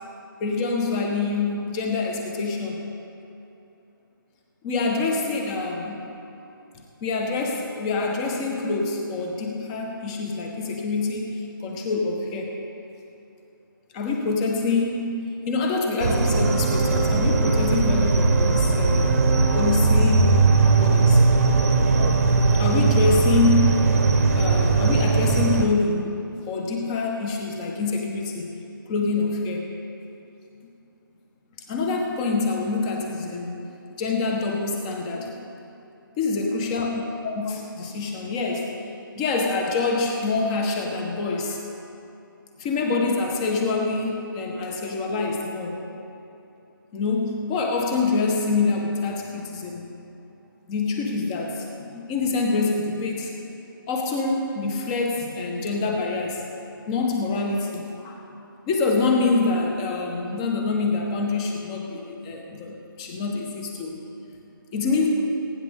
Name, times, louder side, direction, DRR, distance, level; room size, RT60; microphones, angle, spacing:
voice 1, 0.4-2.8 4.6-6.0 7.0-12.5 13.9-19.2 19.5-20.3 20.7-21.2 22.5-23.9 24.3-28.5 28.9-29.7 31.7-33.7 34.0-35.3 36.2-38.7 39.1-41.6 42.6-45.9 46.9-50.0 50.7-53.3 53.9-56.4 56.9-58.3 58.7-64.0 64.7-65.1, left 3 dB, 15° left, 1 dB, 1.3 m, -26 dB
sound 1, 16.0-25.7, right 4 dB, 45° right, 1.2 m, -19 dB
22.0 x 9.7 x 3.7 m, 2.8 s
hypercardioid pair, 165°, 12 cm